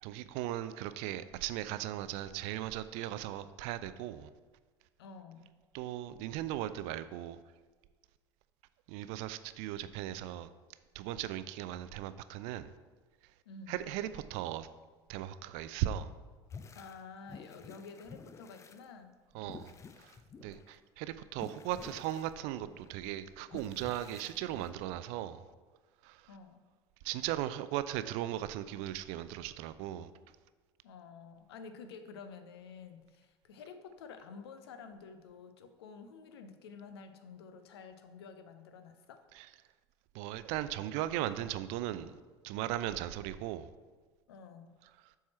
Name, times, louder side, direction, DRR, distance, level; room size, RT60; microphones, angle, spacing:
voice 1, 0.0-4.3 5.7-7.4 8.9-10.5 10.9-12.7 13.7-14.7 15.1-16.1 19.3-19.7 20.0-25.4 26.0-26.3 27.0-30.1 39.4-39.5 40.1-42.2 42.4-43.7, right 13 dB, 50° right, 0.4 m, -37 dB
voice 2, 5.0-5.5 13.5-13.8 16.7-19.1 26.3-26.6 30.8-39.2 44.3-44.8, left 5 dB, 65° left, 0.6 m, -50 dB
sound 1, 16.5-17.0 17.3-18.8 19.4-20.7 21.3-22.9 23.5-24.7, left 5 dB, 20° left, 0.4 m, -51 dB
7.1 x 4.6 x 4.3 m
figure-of-eight pair, 65°, 14 cm